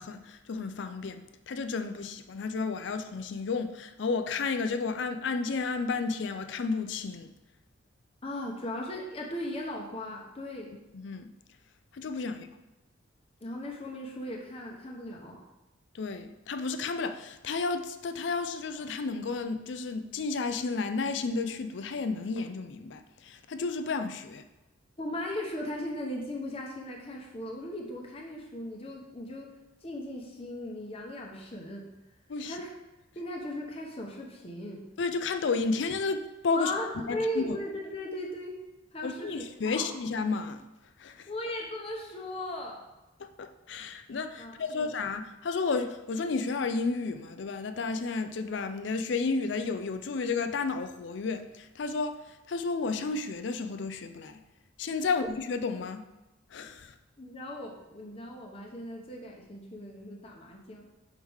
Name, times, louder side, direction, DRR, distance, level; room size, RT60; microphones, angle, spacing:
voice 1, 0.0-7.3 10.9-11.3 11.9-12.5 15.9-24.4 32.3-32.6 35.0-36.7 37.1-37.6 39.0-40.6 41.0-41.3 43.2-54.4 54.8-56.0 56.5-56.9, left 4 dB, 60° left, 8 dB, 0.4 m, -32 dB
voice 2, 8.2-10.7 12.3-12.4 13.4-15.4 25.0-29.5 29.8-31.9 32.4-32.7 33.1-34.8 36.5-38.6 38.9-39.9 41.3-42.8 44.4-44.9 55.1-55.3 57.2-60.9, left 1 dB, 30° left, -1 dB, 0.9 m, -37 dB
6.3 x 4.8 x 3.5 m, 1.0 s
head